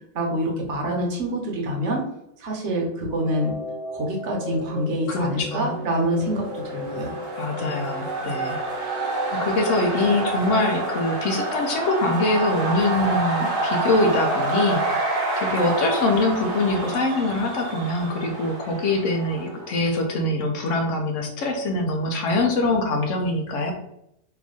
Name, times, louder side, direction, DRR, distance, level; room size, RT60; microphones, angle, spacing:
voice 1, 0.1-2.0 2.4-3.5 3.9-7.1 7.6-7.8, right 1 dB, 60° right, 0 dB, 1.1 m, -26 dB
sound 1, 3.1-11.0, left 1 dB, 35° left, 1.6 m, -36 dB
voice 2, 5.1-5.7 7.4-8.6 9.3-23.7, left 2 dB, 70° left, 3 dB, 1.0 m, -24 dB
sound 2, 6.0-19.8, right 2 dB, 80° right, 1.3 m, -28 dB
3.4 x 2.5 x 3.6 m, 0.77 s
omnidirectional pair, 1.4 m